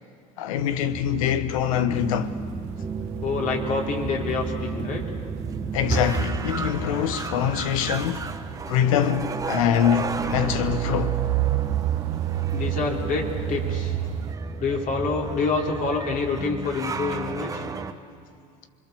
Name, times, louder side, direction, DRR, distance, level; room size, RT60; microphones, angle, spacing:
voice 1, 0.4-2.3 5.7-8.3 8.7-11.2, left 9 dB, 90° left, 1.1 m, -24 dB
sound 1, 0.6-17.9, right 4 dB, 20° right, 1.2 m, -32 dB
sound 2, 1.9-14.3, right 14 dB, 70° right, 1.0 m, -32 dB
voice 2, 3.2-5.0 12.5-14.0 14.6-17.6, left 4 dB, 50° left, 4.0 m, -27 dB
25.5 x 22.5 x 7.0 m
supercardioid pair, 100°, 17 cm